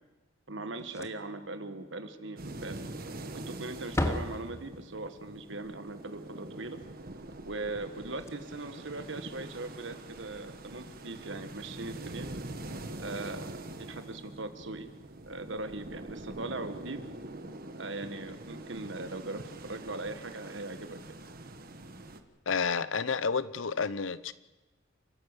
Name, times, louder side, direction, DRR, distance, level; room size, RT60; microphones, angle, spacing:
voice 1, 0.5-2.8 3.5-6.8 7.4-12.3 13.0-13.5 13.9-14.9 15.3-17.0 17.8-21.0, right 2 dB, 70° right, 9 dB, 1.6 m, -40 dB
Slam, 0.7-1.4 1.7-1.8 2.3-2.4 3.2-3.5 3.8-5.1 7.8-7.9 8.1-8.3 9.8-10.0, left 1 dB, 15° left, 1.1 m, -35 dB
sound 1, 2.4-22.2, right 2 dB, 50° right, 1.3 m, -44 dB
voice 2, 22.5-24.3, left 5 dB, 80° left, 16 dB, 0.8 m, -30 dB
28.0 x 12.5 x 8.2 m, 1.1 s
head